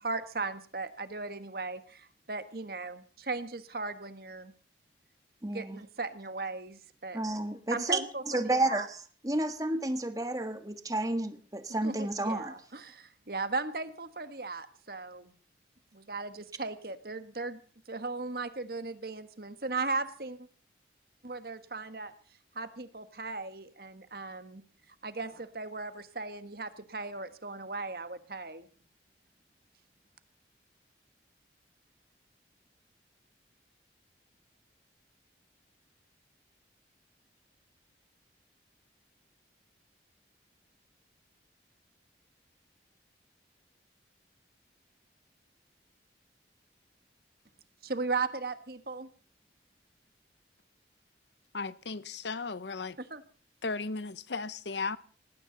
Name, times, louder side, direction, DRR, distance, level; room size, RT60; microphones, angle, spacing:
voice 1, 0.0-4.5 5.5-7.2 7.7-8.9 11.8-15.4 15.9-17.6 17.9-20.5 21.2-22.1 22.5-24.6 25.0-28.7 47.8-49.1 53.0-53.2, right 3 dB, 55° right, 1.5 m, -37 dB
voice 2, 5.4-5.8 7.1-9.0 9.2-12.5, right 2 dB, 20° right, 1.5 m, -31 dB
voice 3, 51.5-53.0 53.6-55.0, left 4 dB, 75° left, 0.9 m, -35 dB
19.5 x 17.0 x 4.0 m
head